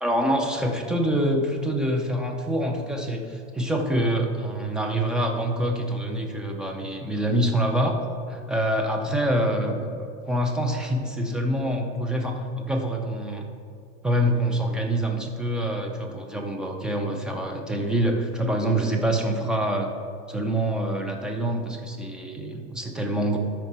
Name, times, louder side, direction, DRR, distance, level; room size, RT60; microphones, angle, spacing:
voice 1, 0.0-8.0 8.3-13.5 14.0-19.9 20.3-23.4, right 1 dB, ahead, 2 dB, 0.5 m, -26 dB
13.0 x 4.5 x 4.3 m, 2.5 s
supercardioid pair, 135°, 37 cm